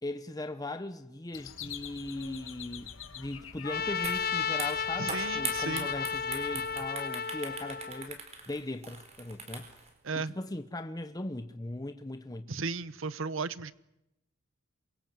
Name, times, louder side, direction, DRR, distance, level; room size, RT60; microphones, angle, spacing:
voice 1, 0.0-9.7 10.2-12.5, left 2 dB, 20° left, 0.9 m, -39 dB
sound 1, 1.3-6.9, left 7 dB, 70° left, 2.0 m, -46 dB
Trumpet, 3.6-8.1, left 6 dB, 45° left, 1.0 m, -33 dB
sound 2, 4.0-4.2 4.5-9.9, right 5 dB, 30° right, 4.4 m, -40 dB
voice 2, 5.0-5.9 10.0-10.4 12.5-13.7, right 4 dB, 70° right, 1.0 m, -35 dB
27.5 x 23.0 x 7.8 m
head